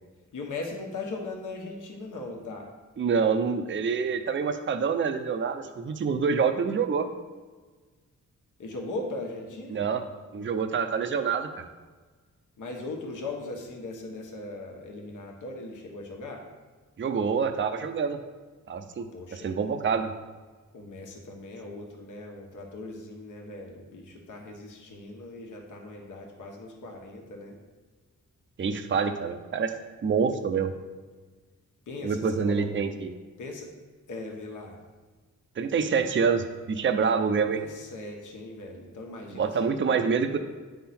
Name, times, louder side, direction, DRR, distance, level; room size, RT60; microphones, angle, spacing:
voice 1, 0.3-2.7 8.6-9.8 12.6-16.4 19.1-19.5 19.9-20.0 20.7-27.6 31.9-32.7 33.4-33.7 34.1-34.8 37.3-40.2, left 2 dB, 70° left, 1 dB, 1.3 m, -39 dB
voice 2, 3.0-7.1 9.7-10.0 10.3-11.7 17.0-18.2 18.7-20.1 28.6-29.7 30.0-30.7 32.0-33.1 35.6-37.6 39.3-40.4, right 6 dB, 40° right, 7 dB, 0.6 m, -26 dB
9.5 x 5.7 x 4.3 m, 1.4 s
wide cardioid pair, 145°, 32 cm